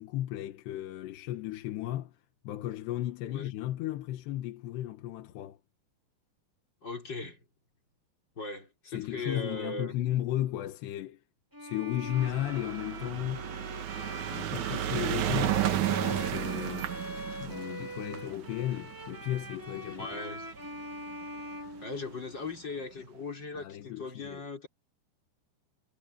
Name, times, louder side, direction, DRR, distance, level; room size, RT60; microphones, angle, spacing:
voice 1, 0.0-2.2 2.4-5.6 8.9-11.2 11.6-13.5 14.3-16.9 17.4-20.2 23.5-24.4, left 13 dB, 80° left, 3.4 m, -35 dB
voice 2, 6.8-7.4 8.3-9.9 19.9-20.5 21.8-24.7, left 3 dB, 25° left, 4.7 m, -39 dB
Bowed string instrument, 11.5-22.5, right 1 dB, 10° right, 1.4 m, -43 dB
sound 1, 12.1-20.6 21.4-21.5 21.7-21.8 22.0-22.1, right 11 dB, 65° right, 2.0 m, -33 dB
omnidirectional pair, 4.8 m